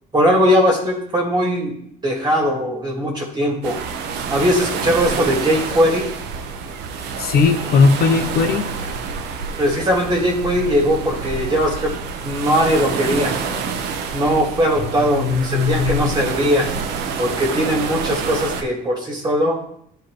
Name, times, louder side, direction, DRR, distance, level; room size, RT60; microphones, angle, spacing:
voice 1, 0.1-1.7 2.0-3.8 4.3-6.1 9.6-11.9 12.2-13.4 14.1-16.7 17.2-19.6, equal, 25° right, -1 dB, 1.9 m, -19 dB
sound 1, 3.6-18.6, right 5 dB, 85° right, 0.9 m, -27 dB
voice 2, 7.2-8.7 15.0-16.1, left 5 dB, 65° left, 8 dB, 0.9 m, -18 dB
12.0 x 4.5 x 3.2 m, 0.71 s
cardioid pair, 110°, 17 cm